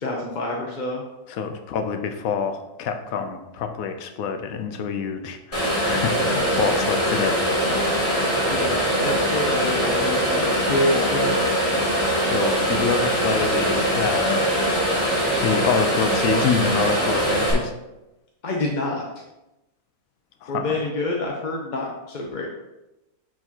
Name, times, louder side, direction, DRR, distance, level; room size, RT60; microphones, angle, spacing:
voice 1, 0.0-1.0 8.5-11.3 18.4-19.0 20.5-22.5, left 2 dB, 40° left, -1 dB, 0.8 m, -27 dB
voice 2, 1.3-8.0 12.2-14.5 15.4-17.7 20.4-20.8, left 6 dB, 75° left, 7 dB, 1.1 m, -26 dB
sound 1, 5.5-17.5, right 1 dB, 25° left, 2.6 m, -22 dB
10.5 x 4.5 x 2.9 m, 0.97 s
omnidirectional pair, 1.5 m